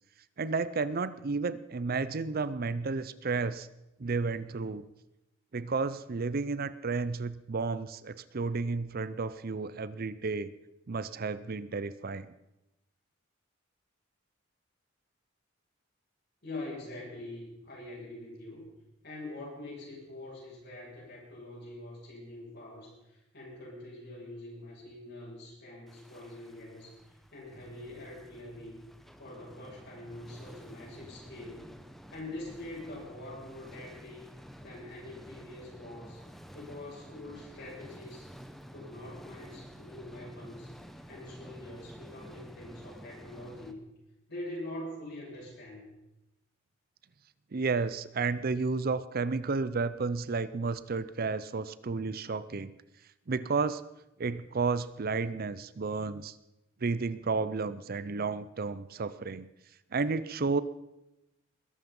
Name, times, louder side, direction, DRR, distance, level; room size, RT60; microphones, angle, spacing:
voice 1, 0.4-3.7 4.0-4.8 5.5-10.5 10.9-12.3 47.5-52.7 53.3-53.8 54.2-56.3 56.8-59.5 59.9-60.6, right 4 dB, 50° right, 16 dB, 0.6 m, -32 dB
voice 2, 16.4-18.7 19.0-28.8 29.2-31.7 32.1-34.2 34.6-36.2 36.5-38.3 38.7-40.7 41.1-43.8 44.3-45.8, left 1 dB, 55° left, -5 dB, 7.0 m, -44 dB
sound 1, 25.9-43.7, equal, ahead, 1.0 m, -51 dB
21.0 x 12.0 x 5.4 m, 0.93 s
head